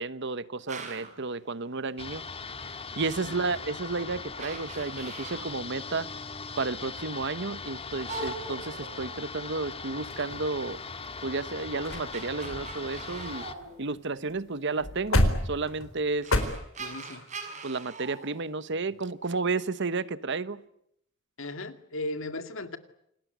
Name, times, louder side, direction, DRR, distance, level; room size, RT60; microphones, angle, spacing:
voice 1, 0.0-2.2 3.0-6.1 6.6-10.8 11.2-13.4 13.8-16.3 17.6-20.6, right 3 dB, 60° right, 1.1 m, -32 dB
sound 1, 0.7-1.2 3.3-3.4 4.0-4.1 4.4-5.7 8.1-9.7 11.6-14.3 15.7-15.8 16.2-19.1, right 4 dB, 35° right, 6.1 m, -42 dB
sound 2, 2.0-13.5, left 4 dB, 30° left, 1.7 m, -40 dB
sound 3, 10.1-11.0 11.5-11.6 11.8-12.1 12.4-14.0 14.3-14.4 14.7-16.4, left 1 dB, 90° left, 4.2 m, -29 dB
voice 2, 16.8-17.3 21.4-22.8, left 2 dB, 75° left, 2.2 m, -37 dB
28.0 x 20.0 x 9.5 m
head